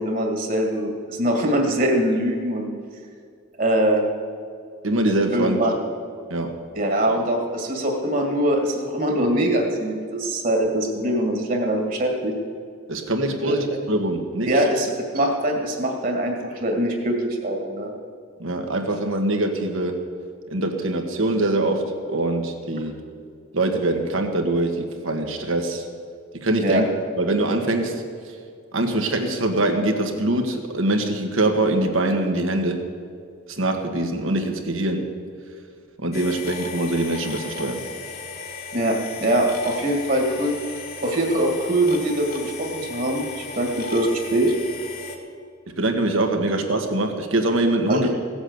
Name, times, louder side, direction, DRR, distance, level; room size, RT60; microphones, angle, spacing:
voice 1, 0.0-2.7 3.6-4.1 5.3-5.7 6.8-12.3 13.4-13.8 14.5-17.9 26.6-26.8 38.7-39.0 39.2-40.5 41.0-44.5 47.9-48.1, right 1 dB, 40° right, 2 dB, 2.1 m, -23 dB
voice 2, 4.8-5.6 6.3-6.5 12.9-14.5 18.4-20.0 20.5-23.0 23.5-25.9 26.4-26.9 27.2-28.0 28.7-32.8 33.5-35.0 36.0-37.8 45.8-48.1, right 2 dB, 75° right, 4 dB, 1.7 m, -23 dB
sound 1, 36.1-45.2, left 4 dB, 45° left, 1.8 m, -36 dB
16.5 x 8.0 x 8.0 m, 2.2 s
head